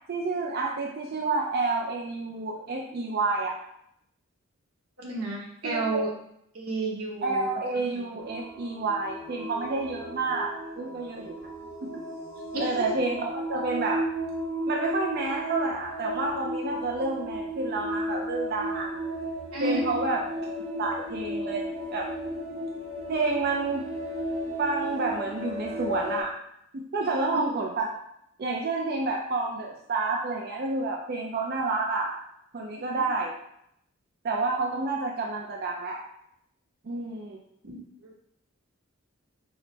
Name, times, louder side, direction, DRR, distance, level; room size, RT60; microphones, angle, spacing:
voice 1, 0.1-3.6 5.6-6.0 7.2-10.5 10.8-11.4 11.8-12.0 12.6-14.0 14.7-18.9 19.6-20.2 20.8-21.6 21.9-22.0 23.1-23.8 24.6-26.4 26.7-27.9 28.4-32.1 32.5-33.3 34.2-36.0 36.8-37.4, right 3 dB, 45° right, 0 dB, 0.4 m, -29 dB
voice 2, 5.0-6.1 6.5-7.5 12.5-13.0 19.5-20.0 27.0-27.4 32.7-32.8 37.6-37.8 38.0-38.1, right 2 dB, 90° right, -3 dB, 1.1 m, -31 dB
sound 1, 8.2-26.2, equal, 65° right, 0.8 m, -34 dB
4.8 x 2.1 x 3.9 m, 0.74 s
head